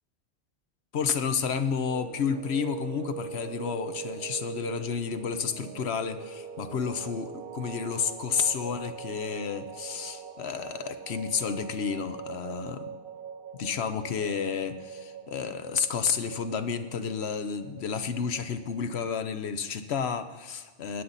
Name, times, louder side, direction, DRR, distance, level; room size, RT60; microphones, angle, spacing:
voice 1, 0.9-12.9 13.6-21.0, left 6 dB, 85° left, 10 dB, 1.1 m, -31 dB
sound 1, 1.9-19.2, right 7 dB, 65° right, 0.8 m, -42 dB
17.5 x 10.5 x 4.1 m, 1.4 s
omnidirectional pair, 1.1 m